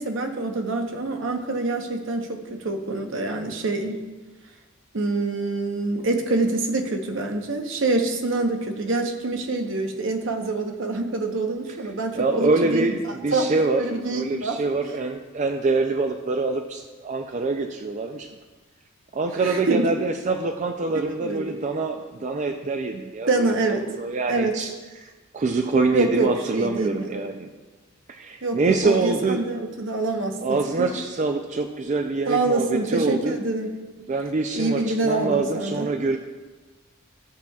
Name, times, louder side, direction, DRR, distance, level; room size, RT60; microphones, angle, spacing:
voice 1, 0.0-4.0 4.9-13.5 13.8-14.6 19.4-20.0 21.2-21.6 23.3-23.9 24.3-24.5 25.9-27.2 28.4-30.9 32.2-33.7 34.5-35.9, right 2 dB, 70° right, 4 dB, 0.9 m, -26 dB
voice 2, 12.1-18.3 19.1-24.7 25.0-27.5 28.1-29.4 30.4-33.4 34.1-36.2, right 3 dB, 35° right, 5 dB, 0.4 m, -25 dB
14.5 x 7.1 x 2.3 m, 1.3 s
head